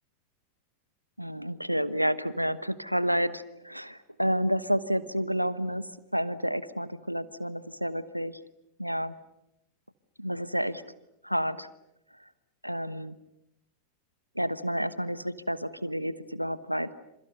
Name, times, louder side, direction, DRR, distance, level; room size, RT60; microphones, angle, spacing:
voice 1, 1.2-8.4 8.8-9.1 10.2-10.8 11.2-11.7 12.6-13.2 14.3-16.9, equal, 90° right, 16 dB, 1.1 m, -30 dB
28.0 x 28.0 x 6.7 m, 0.83 s
figure-of-eight pair, 90°, 0 cm